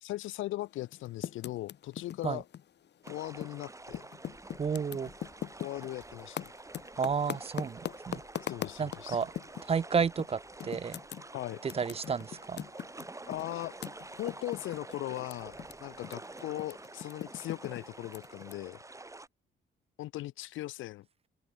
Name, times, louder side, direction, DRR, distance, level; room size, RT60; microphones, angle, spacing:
voice 1, 0.0-2.5 3.1-4.0 5.6-6.5 8.5-9.2 11.3-11.6 13.3-13.8 14.2-18.8 20.0-21.1, left 16 dB, 80° left, 0.5 m, -39 dB
Typing, 0.8-3.6 3.9-9.8 10.2-10.3 10.6-15.7 16.0-18.5, left 10 dB, 60° left, 1.6 m, -41 dB
sound 1, 3.0-19.3, right 2 dB, 15° right, 2.7 m, -48 dB
voice 2, 4.6-5.1 7.0-7.8 8.1-8.2 8.8-9.3 9.7-11.0 11.6-12.6, right 6 dB, 30° right, 0.5 m, -31 dB
open air
cardioid pair, 90°, 20 cm